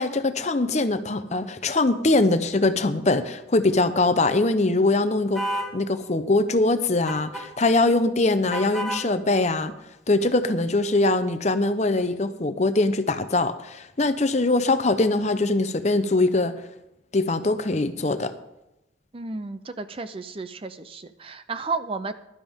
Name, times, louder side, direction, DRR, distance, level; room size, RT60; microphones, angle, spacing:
voice 1, 0.0-5.4 5.7-9.7 10.1-16.5 17.1-18.3, left 2 dB, 35° left, 10 dB, 0.7 m, -22 dB
sound 1, 5.3-5.7 7.1-7.5 8.5-9.1, equal, ahead, 1.7 m, -29 dB
voice 2, 19.1-22.1, right 3 dB, 30° right, 11 dB, 0.5 m, -32 dB
15.5 x 12.0 x 3.6 m, 0.91 s
head